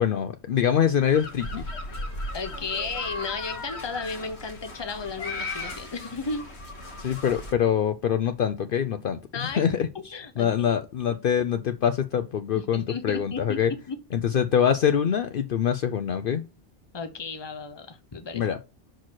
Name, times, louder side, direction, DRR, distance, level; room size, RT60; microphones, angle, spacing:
voice 1, 0.0-1.7 7.0-9.9 10.4-13.7 14.1-16.5 18.3-18.6, left 8 dB, 60° left, 0.7 m, -24 dB
sound 1, 1.1-7.5, left 2 dB, 85° left, 1.9 m, -36 dB
voice 2, 2.3-6.5 9.3-9.6 9.9-10.8 12.6-14.0 16.9-18.5, left 4 dB, 25° left, 0.9 m, -34 dB
5.9 x 4.5 x 6.2 m
omnidirectional pair, 1.1 m